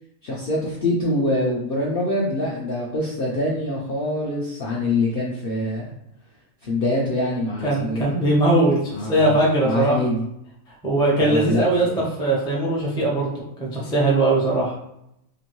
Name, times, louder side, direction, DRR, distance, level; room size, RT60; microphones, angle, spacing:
voice 1, 0.2-5.9 6.6-8.1 8.9-9.3 9.6-10.2 11.2-12.0, left 1 dB, 65° left, -3 dB, 0.5 m, -24 dB
voice 2, 7.6-10.0 10.8-13.3 13.6-14.7, right 2 dB, 5° left, -4 dB, 0.3 m, -20 dB
2.9 x 2.6 x 3.0 m, 0.81 s
omnidirectional pair, 1.5 m